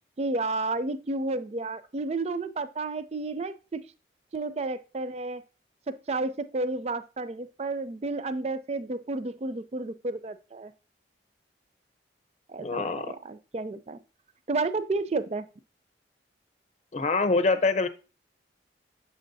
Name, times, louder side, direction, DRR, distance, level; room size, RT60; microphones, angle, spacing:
voice 1, 0.2-3.8 4.3-5.4 5.9-10.7 12.5-14.0 14.5-15.5, right 3 dB, 35° right, 13 dB, 0.4 m, -31 dB
voice 2, 12.6-13.1 16.9-17.9, left 3 dB, 35° left, 10 dB, 0.7 m, -25 dB
7.2 x 6.2 x 2.7 m, 0.33 s
head